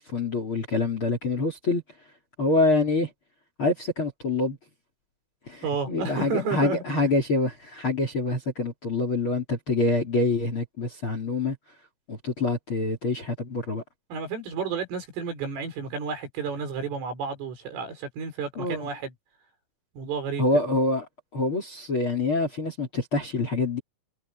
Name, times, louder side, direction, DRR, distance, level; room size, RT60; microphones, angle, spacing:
voice 1, 0.0-1.8 2.4-3.1 3.6-4.6 5.5-11.6 12.1-13.8 18.5-18.9 20.4-21.0 21.3-23.8, left 3 dB, 30° left, 3.0 m, -26 dB
voice 2, 5.6-6.8 14.1-19.1 20.0-20.5, right 5 dB, 75° right, 8.6 m, -31 dB
omnidirectional pair, 5.9 m